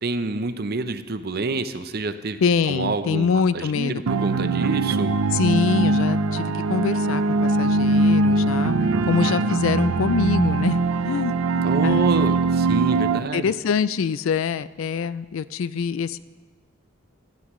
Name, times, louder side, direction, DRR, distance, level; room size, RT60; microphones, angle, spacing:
voice 1, 0.0-2.4 2.7-3.3 3.5-5.2 11.6-13.5, right 3 dB, 50° right, 10 dB, 0.6 m, -27 dB
voice 2, 2.4-4.0 5.3-8.8 9.1-10.8 11.0-12.0 13.2-16.2, left 6 dB, 70° left, 16 dB, 0.4 m, -24 dB
sound 1, 4.1-13.2, right 3 dB, 90° right, 0.5 m, -21 dB
16.5 x 13.5 x 3.1 m, 1.4 s
head